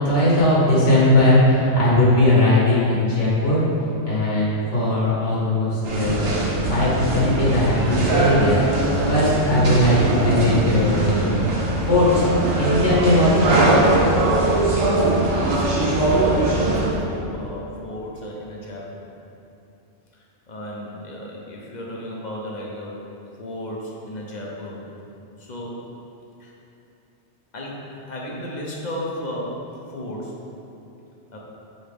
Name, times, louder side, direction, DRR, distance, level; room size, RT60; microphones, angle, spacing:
voice 1, 0.0-3.7 4.0-6.3 6.7-8.8 9.1-11.6 11.9-12.3 12.6-14.0, left 1 dB, 75° left, -8 dB, 2.0 m, -19 dB
sound 1, 5.8-16.9, right 2 dB, 55° right, 1.1 m, -21 dB
voice 2, 15.5-19.1 20.1-23.0 23.4-24.8 25.4-25.9 26.4-26.5 27.5-30.4 31.3-31.4, left 1 dB, 40° left, -3 dB, 0.9 m, -34 dB
6.4 x 4.4 x 3.5 m, 2.8 s
omnidirectional pair, 1.2 m